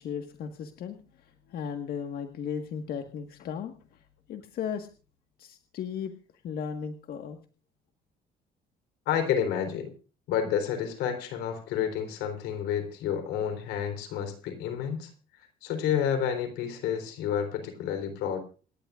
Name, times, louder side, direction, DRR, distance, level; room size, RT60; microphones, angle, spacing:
voice 1, 0.0-4.0 4.3-4.9 5.4-6.1 6.4-7.4, left 7 dB, 65° left, 6 dB, 1.6 m, -36 dB
voice 2, 9.1-9.9 10.3-15.1 15.6-18.4, left 8 dB, 90° left, 7 dB, 4.0 m, -30 dB
27.5 x 11.0 x 2.5 m, 0.37 s
cardioid pair, 110°, 17 cm